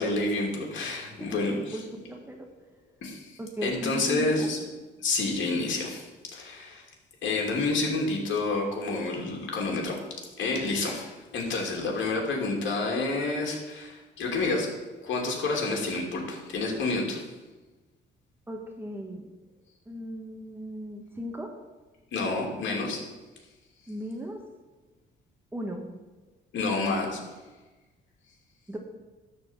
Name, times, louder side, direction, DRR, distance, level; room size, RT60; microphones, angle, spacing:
voice 1, 0.0-1.5 3.0-3.3 3.6-4.6 5.0-6.8 7.2-9.9 10.4-14.7 15.0-17.2 22.1-23.0 26.5-27.2, left 3 dB, 70° left, -1 dB, 2.7 m, -29 dB
voice 2, 1.2-2.5 3.4-4.5 18.5-19.3 19.9-21.5 23.9-24.4 25.5-25.8 28.7-28.8, right 1 dB, 10° right, 2 dB, 1.4 m, -37 dB
12.0 x 4.3 x 7.3 m, 1.2 s
cardioid pair, 90°, 20 cm